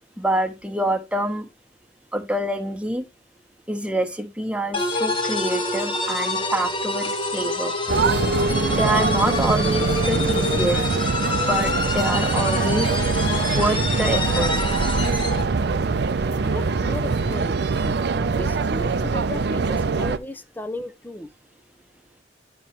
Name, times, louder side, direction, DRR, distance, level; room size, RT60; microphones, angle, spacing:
voice 1, 0.2-1.5 2.1-3.0 3.7-7.7 8.7-10.8 11.5-12.9 13.6-14.5 17.9-18.0, right 1 dB, 5° right, 1.1 m, -26 dB
sound 1, 4.7-15.5, left 2 dB, 30° left, 1.4 m, -26 dB
sound 2, 7.9-20.2, right 4 dB, 65° right, 0.5 m, -23 dB
voice 2, 16.4-17.6 18.4-21.3, left 1 dB, 10° left, 0.5 m, -35 dB
9.0 x 3.1 x 5.8 m
head